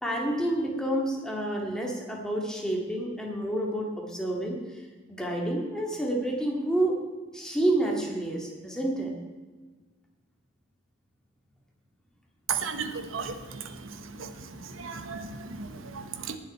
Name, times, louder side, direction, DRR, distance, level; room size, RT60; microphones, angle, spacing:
voice 1, 0.0-4.6 5.1-7.0 7.3-9.1, right 1 dB, 5° left, -2 dB, 2.1 m, -29 dB
voice 2, 12.5-13.6 14.2-14.3 14.8-16.4, right 6 dB, 90° right, 8 dB, 1.0 m, -34 dB
18.5 x 7.3 x 4.4 m, 1.4 s
head